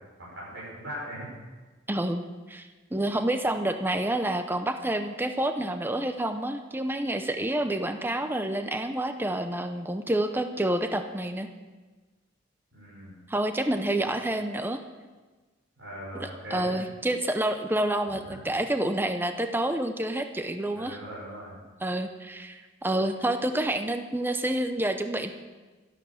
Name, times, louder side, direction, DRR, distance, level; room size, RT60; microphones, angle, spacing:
voice 1, 0.2-1.3 12.7-13.2 15.8-16.7 18.1-18.4 20.7-21.6, equal, 85° right, -7 dB, 6.0 m, -40 dB
voice 2, 1.9-11.5 13.3-14.8 16.2-21.0 21.8-25.3, right 1 dB, 10° right, 7 dB, 0.6 m, -28 dB
12.5 x 11.0 x 7.1 m, 1.3 s
head